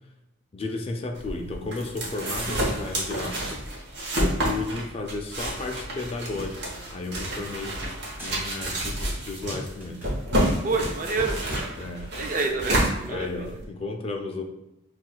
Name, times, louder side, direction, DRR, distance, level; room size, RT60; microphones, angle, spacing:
voice 1, 0.5-3.6 4.1-7.8 8.2-10.1 11.8-12.1 13.1-14.4, left 3 dB, 30° left, 3 dB, 0.3 m, -33 dB
sound 1, 1.2-13.6, right 1 dB, 55° right, 1.0 m, -29 dB
sound 2, 6.6-7.9 8.2-8.9 9.2-11.9, equal, 10° right, 1.4 m, -41 dB
voice 2, 10.6-11.4 12.2-13.5, right 3 dB, 40° right, 4 dB, 0.4 m, -28 dB
5.9 x 2.3 x 2.2 m, 0.93 s
head